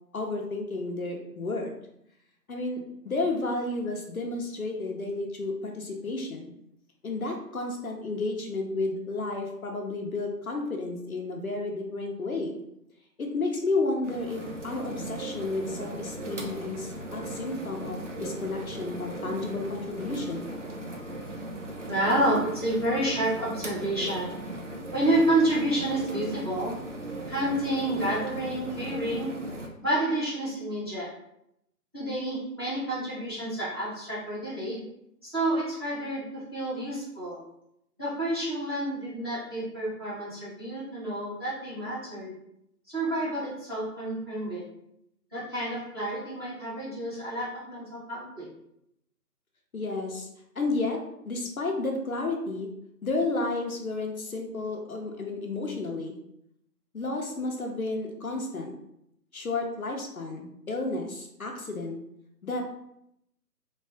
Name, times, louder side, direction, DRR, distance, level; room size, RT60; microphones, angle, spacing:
voice 1, 0.1-1.7 2.5-6.5 7.0-12.5 13.2-20.5 49.7-50.3 50.6-52.7 53.0-56.1 56.9-58.7 59.3-62.0 62.4-62.6, left 3 dB, 60° left, 1 dB, 0.7 m, -32 dB
sound 1, 14.0-29.7, right 1 dB, 50° right, 0.6 m, -38 dB
voice 2, 21.9-24.3 24.9-26.8 27.3-29.3 29.8-31.1 31.9-34.8 35.2-37.4 38.0-42.3 42.9-44.6 45.3-48.4, right 1 dB, 15° right, -13 dB, 1.0 m, -29 dB
3.2 x 2.4 x 3.4 m, 0.78 s
figure-of-eight pair, 165°, 49 cm